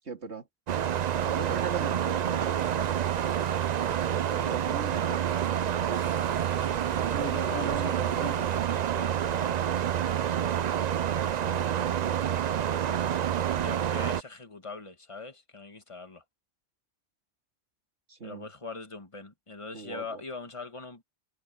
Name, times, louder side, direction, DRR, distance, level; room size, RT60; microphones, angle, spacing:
voice 1, 0.0-0.5 1.1-3.1 4.1-5.3 7.1-8.4 11.4-13.1 18.1-18.5 19.7-20.2, right 5 dB, 75° right, 2.7 m, -39 dB
sound 1, 0.7-14.2, right 9 dB, 55° right, 0.5 m, -28 dB
sound 2, 2.4-8.9, equal, 10° right, 3.7 m, -52 dB
voice 2, 6.5-9.4 13.6-16.2 18.2-21.0, left 4 dB, 25° left, 1.9 m, -42 dB
omnidirectional pair, 1.2 m